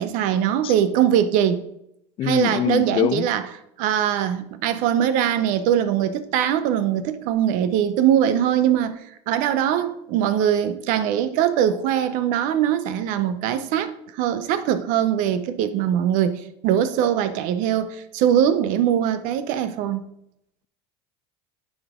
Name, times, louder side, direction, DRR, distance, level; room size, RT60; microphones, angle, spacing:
voice 1, 0.0-1.6 2.2-3.4 3.8-9.0 9.3-20.1, right 10 dB, 60° right, 0.7 m, -22 dB
voice 2, 2.2-3.3, left 12 dB, 35° left, 0.4 m, -23 dB
9.6 x 5.2 x 3.6 m
supercardioid pair, 120°, 15 cm